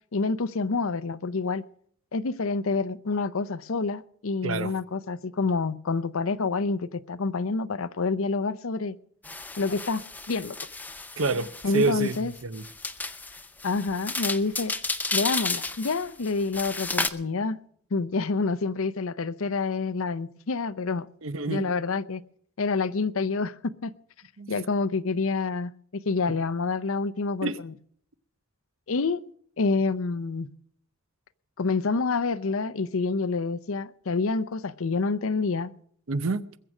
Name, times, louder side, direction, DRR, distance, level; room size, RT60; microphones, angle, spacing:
voice 1, 0.1-1.6 2.1-8.9 9.6-10.0 10.3-10.5 11.6-12.3 13.6-14.7 15.1-17.6 17.9-21.1 21.5-22.2 22.6-23.5 23.8-23.9 24.5-27.7 28.9-29.2 29.6-30.5 31.6-35.7, left 4 dB, 75° left, 0.6 m, -27 dB
voice 2, 4.4-4.7 11.2-11.5 11.7-12.6 21.2-21.7 24.4-24.5 27.4-27.6 36.1-36.4, right 3 dB, 65° right, 0.7 m, -27 dB
sound 1, 9.2-17.1, left 3 dB, 10° left, 0.5 m, -33 dB
21.0 x 7.8 x 6.0 m
head